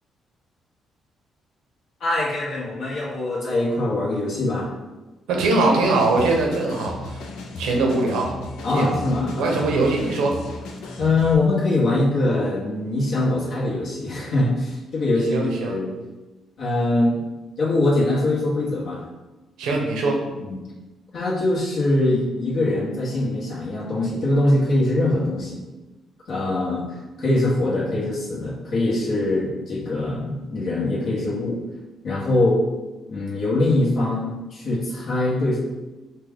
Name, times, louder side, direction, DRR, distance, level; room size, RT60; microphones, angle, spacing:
voice 1, 2.0-4.7 8.6-9.8 11.0-15.9 16.6-17.2 17.6-19.0 20.4-20.6 21.1-25.6 26.3-31.6 32.0-32.6 33.1-35.6, left 2 dB, 65° left, -5 dB, 1.4 m, -23 dB
voice 2, 5.3-7.2 7.6-8.3 8.7-8.9 9.4-10.4 15.3-15.8 19.6-20.2, right 2 dB, 90° right, 0 dB, 1.0 m, -21 dB
sound 1, 5.8-11.3, left 2 dB, 90° left, 0.6 m, -35 dB
5.7 x 2.3 x 3.6 m, 1.1 s
cardioid pair, 90°, 0 cm